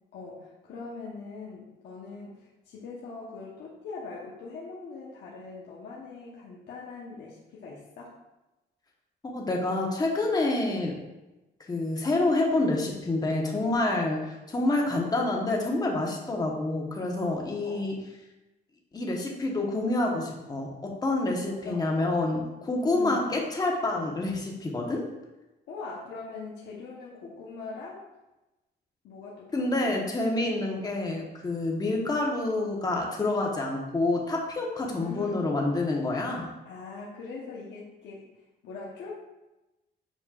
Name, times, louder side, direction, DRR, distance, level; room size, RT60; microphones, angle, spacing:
voice 1, 0.1-8.1 17.6-17.9 21.5-21.9 23.0-23.3 25.7-28.0 29.0-29.9 35.0-35.4 36.6-38.3 38.6-39.1, left 4 dB, 80° left, -5 dB, 1.1 m, -41 dB
voice 2, 9.3-10.9 11.7-17.9 18.9-25.0 29.5-36.5, left 2 dB, 20° left, -1 dB, 1.1 m, -27 dB
7.3 x 5.3 x 2.5 m, 1.0 s
cardioid pair, 135°, 18 cm